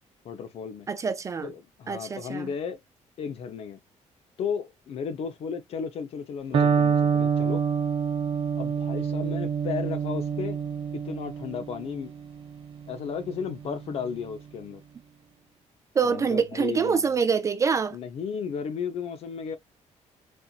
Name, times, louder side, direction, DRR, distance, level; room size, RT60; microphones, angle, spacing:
voice 1, 0.2-0.9 1.4-2.8 3.2-3.8 4.4-7.6 8.6-10.6 10.9-12.1 12.9-14.8 16.0-17.1 17.9-19.6, left 6 dB, 50° left, 0.8 m, -34 dB
voice 2, 0.9-1.5 1.9-2.5 16.0-18.0, right 5 dB, 25° right, 0.4 m, -25 dB
Electric guitar, 6.5-14.4, right 6 dB, 45° right, 0.9 m, -27 dB
4.3 x 2.5 x 2.4 m
cardioid pair, 175°, 13 cm